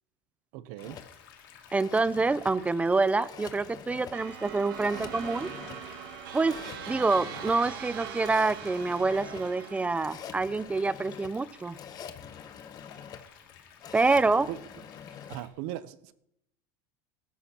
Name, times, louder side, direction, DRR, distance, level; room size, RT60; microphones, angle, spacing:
voice 1, 0.5-1.0 14.5-14.6 15.3-16.1, right 14 dB, 70° right, 15 dB, 0.7 m, -38 dB
sound 1, 0.8-15.5, left 8 dB, 90° left, 2.4 m, -54 dB
sound 2, 0.8-15.4, left 8 dB, 35° left, 0.9 m, -46 dB
voice 2, 1.7-5.5 6.3-6.6 6.9-11.8 13.9-14.5, right 3 dB, 10° right, 18 dB, 0.4 m, -26 dB
sound 3, 4.1-10.3, right 7 dB, 90° right, 2.3 m, -41 dB
17.5 x 14.0 x 2.9 m, 0.81 s
supercardioid pair, 115°, 11 cm